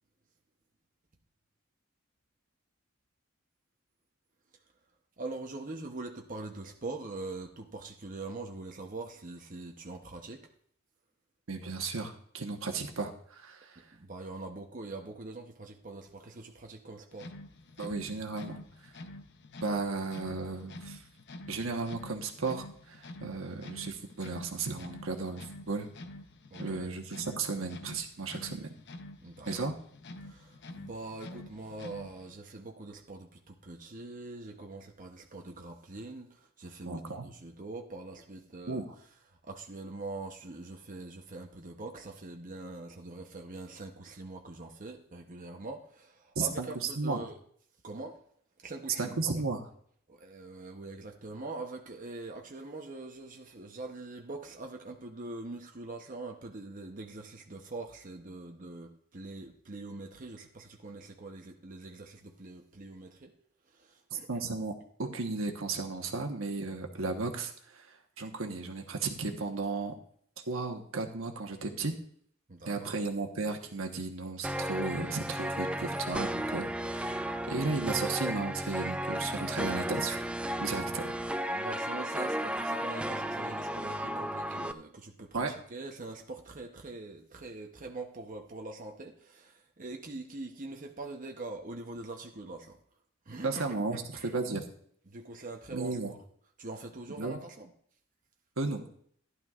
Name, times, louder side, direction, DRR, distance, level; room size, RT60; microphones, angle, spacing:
voice 1, 5.2-10.5 13.8-17.3 26.5-26.9 29.2-29.7 30.2-38.8 39.4-47.4 47.8-48.2 48.6-49.4 50.1-63.3 63.7-64.3 72.5-73.0 81.5-92.8 93.3-93.6 94.1-94.3 95.1-96.2 96.6-97.7, right 2 dB, 40° right, 2 dB, 0.9 m, -43 dB
voice 2, 11.5-13.8 17.8-18.6 19.6-21.0 21.5-25.9 26.6-28.7 29.5-29.7 36.9-37.3 38.7-38.8 46.3-46.7 47.0-47.2 49.0-49.6 64.1-64.7 65.0-69.9 70.5-71.9 72.7-80.2 80.6-81.1 85.3-85.5 93.4-94.7 95.7-96.1 97.2-97.4 98.6-98.8, right 3 dB, 80° right, 3 dB, 1.2 m, -34 dB
sound 1, 17.1-32.3, left 1 dB, 55° left, 0.7 m, -48 dB
sound 2, 74.4-84.7, right 1 dB, 5° right, 0.3 m, -34 dB
15.0 x 11.0 x 2.5 m, 0.63 s
head